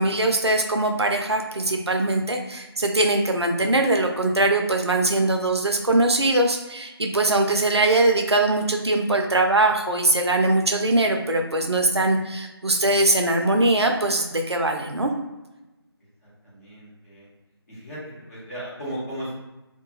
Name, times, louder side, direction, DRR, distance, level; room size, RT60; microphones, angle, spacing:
voice 1, 0.0-15.1, right 2 dB, 80° right, 3 dB, 0.5 m, -21 dB
voice 2, 16.4-17.3 17.7-18.0 18.3-19.3, equal, 35° left, -9 dB, 1.4 m, -35 dB
2.7 x 2.2 x 3.1 m, 1.0 s
figure-of-eight pair, 160°, 14 cm